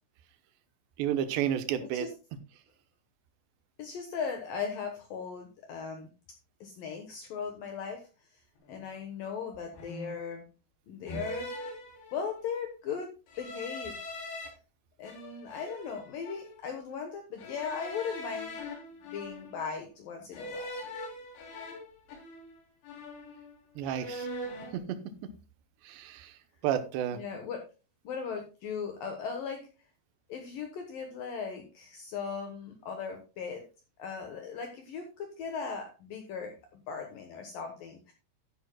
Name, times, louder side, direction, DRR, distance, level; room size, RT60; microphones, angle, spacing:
voice 1, 1.0-2.1 23.8-24.3 24.7-25.0 25.8-26.3 26.6-27.2, right 10 dB, 80° right, 10 dB, 3.1 m, -31 dB
voice 2, 1.8-2.1 3.8-6.1 6.6-8.1 8.7-10.5 10.9-11.5 12.1-14.0 15.0-18.6 19.1-20.8 27.1-27.7 28.0-29.7 30.3-33.7 34.0-38.1, left 6 dB, 65° left, 4 dB, 2.5 m, -38 dB
sound 1, 8.7-8.9 9.7-10.3 11.1-12.5 13.3-14.5 15.0-16.6 17.4-19.7 20.3-22.6 22.8-23.6 23.9-24.8, left 1 dB, 90° left, 5.5 m, -42 dB
13.0 x 10.5 x 2.2 m, 0.31 s
omnidirectional pair, 5.0 m